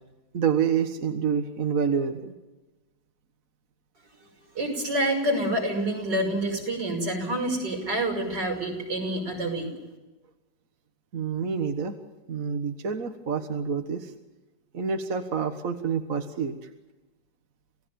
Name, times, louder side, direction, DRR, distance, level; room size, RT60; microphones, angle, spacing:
voice 1, 0.3-2.3 11.1-12.0 12.3-14.1 14.7-16.6, right 6 dB, 50° right, 6 dB, 1.8 m, -27 dB
voice 2, 4.5-9.7, right 1 dB, 85° right, 2 dB, 6.4 m, -27 dB
28.0 x 17.5 x 7.1 m, 1.1 s
omnidirectional pair, 1.8 m